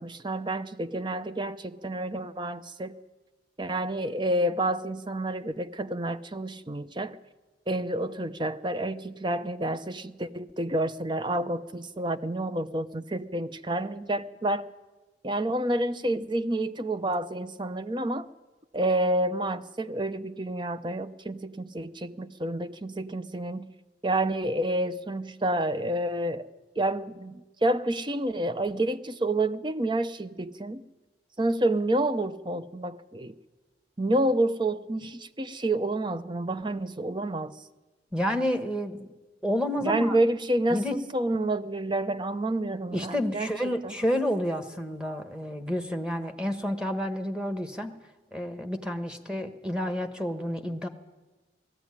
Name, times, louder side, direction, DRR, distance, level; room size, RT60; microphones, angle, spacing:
voice 1, 0.0-2.9 3.6-7.2 7.7-14.7 15.2-18.3 18.7-23.7 24.0-26.5 26.8-30.8 31.4-33.3 34.0-37.5 39.8-43.9, right 1 dB, 25° right, 12 dB, 0.7 m, -29 dB
voice 2, 38.1-39.1 39.4-40.1 40.7-41.0 42.9-47.9 48.3-50.9, equal, 5° right, 5 dB, 1.3 m, -30 dB
18.5 x 14.5 x 9.8 m, 1.2 s
head